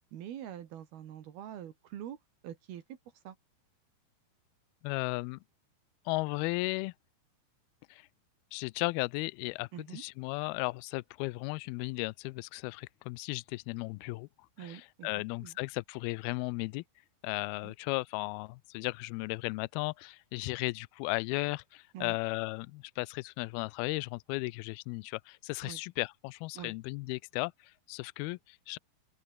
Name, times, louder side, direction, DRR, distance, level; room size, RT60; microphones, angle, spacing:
voice 1, 0.1-2.2 2.4-3.0 3.3-3.4 9.7-10.0 14.6-15.1 15.4-15.5 17.6-17.7 21.9-22.2 25.6-25.8 26.6-26.7, right 10 dB, 75° right, 3.8 m, -44 dB
voice 2, 4.8-5.4 6.1-6.9 7.9-8.1 8.5-14.3 14.6-16.8 17.2-28.8, left 25 dB, 80° left, 2.4 m, -35 dB
open air
omnidirectional pair, 4.5 m